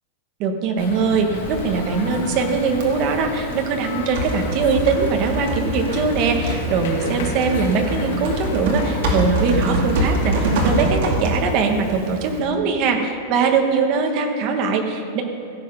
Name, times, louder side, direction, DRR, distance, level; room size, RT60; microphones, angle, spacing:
voice 1, 0.4-15.2, right 5 dB, 35° right, 4 dB, 1.2 m, -21 dB
sound 1, 0.8-10.8, left 3 dB, 75° left, 1.9 m, -31 dB
Typing, 1.3-12.4, right 1 dB, 55° right, 2.2 m, -26 dB
16.5 x 7.5 x 5.4 m, 2.7 s
supercardioid pair, 180°, 0 cm